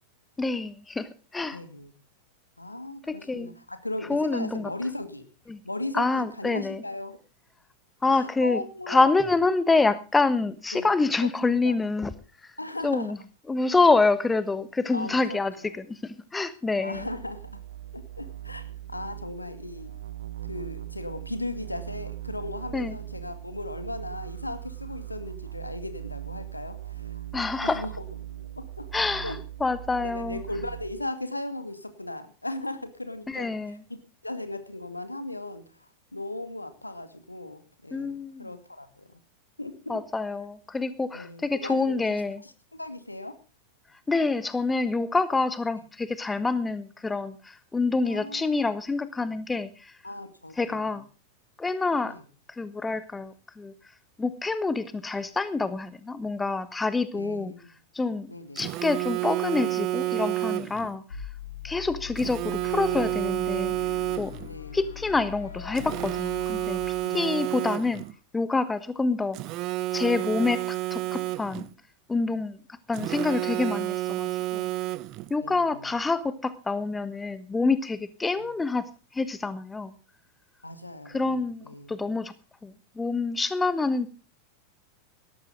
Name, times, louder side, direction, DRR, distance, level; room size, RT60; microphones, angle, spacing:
voice 1, 0.4-1.6 3.1-3.5 4.1-4.7 5.5-5.6 5.9-6.8 8.0-12.1 12.8-13.2 13.5-17.1 22.7-22.9 27.3-27.9 28.9-30.4 33.3-33.8 37.9-38.5 39.9-42.4 44.1-49.9 50.6-51.0 51.6-52.2 52.5-53.7 54.2-57.5 57.9-58.3 58.5-61.0 61.6-63.7 64.2-64.3 64.7-66.8 67.1-68.0 68.3-69.4 69.9-71.7 72.1-72.6 72.9-74.7 75.3-79.9 81.1-82.3 82.6-84.1, left 3 dB, 10° left, 14 dB, 1.2 m, -27 dB
voice 2, 1.5-1.9 2.6-5.3 5.6-7.2 8.1-9.1 10.7-10.9 11.2-11.8 12.6-13.1 14.9-15.7 16.8-17.6 17.9-18.6 18.9-19.9 20.5-28.0 28.6-28.9 29.2-29.4 30.0-34.0 34.2-35.7 36.1-39.2 39.6-40.0 41.1-43.4 48.1-48.6 50.0-51.0 52.0-52.2 57.1-57.8 58.3-58.6 64.4-64.8 67.0-67.5 75.4-76.0 78.4-78.5 80.6-81.9, left 2 dB, 85° left, 9 dB, 2.3 m, -37 dB
sound 1, 16.9-31.0, right 13 dB, 65° right, 2.3 m, -40 dB
Telephone, 58.6-60.9 62.2-64.5 65.8-68.1 69.3-71.7 72.9-75.3, right 18 dB, 40° right, 1.0 m, -30 dB
sound 2, 61.1-68.1, left 9 dB, 70° left, 3.1 m, -41 dB
18.0 x 13.5 x 3.8 m, 0.34 s
figure-of-eight pair, 90°, 0 cm